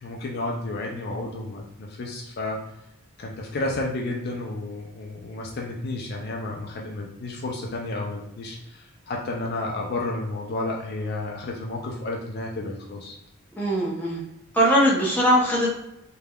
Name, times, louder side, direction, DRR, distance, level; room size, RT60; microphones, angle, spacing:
voice 1, 0.0-2.6 3.2-13.2, left 2 dB, 45° left, -1 dB, 0.3 m, -31 dB
voice 2, 13.6-14.2 14.5-15.7, equal, 10° left, -5 dB, 0.6 m, -20 dB
3.3 x 2.2 x 2.2 m, 0.84 s
head